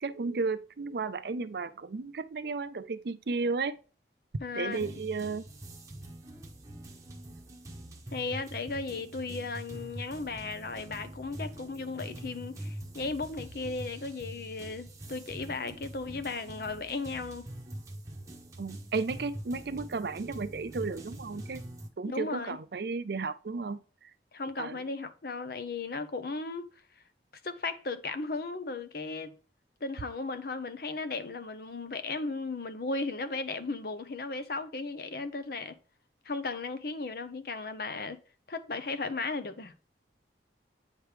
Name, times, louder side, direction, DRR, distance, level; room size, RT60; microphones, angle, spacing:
voice 1, 0.0-3.8 4.5-5.4 18.6-21.6 22.0-24.1 24.6-24.8, right 4 dB, 60° right, 0.5 m, -34 dB
voice 2, 4.4-4.9 8.1-17.4 22.1-22.6 24.3-26.7 27.4-29.3 29.8-35.8 36.2-38.2 38.5-39.7, left 3 dB, 55° left, 0.7 m, -36 dB
sound 1, 4.7-21.9, right 1 dB, 20° right, 0.9 m, -44 dB
8.9 x 3.2 x 4.9 m
head